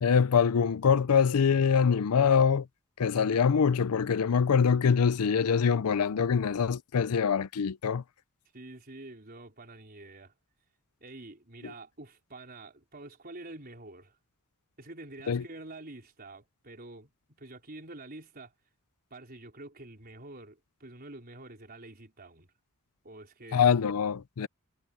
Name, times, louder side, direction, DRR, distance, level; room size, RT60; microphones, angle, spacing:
voice 1, 0.0-2.7 3.0-8.0 11.6-11.7 15.3-15.4 23.5-24.5, left 6 dB, 80° left, 0.5 m, -24 dB
voice 2, 8.5-10.3 11.0-14.2 14.8-18.5 19.1-22.5 23.0-23.7, right 2 dB, 45° right, 4.6 m, -47 dB
head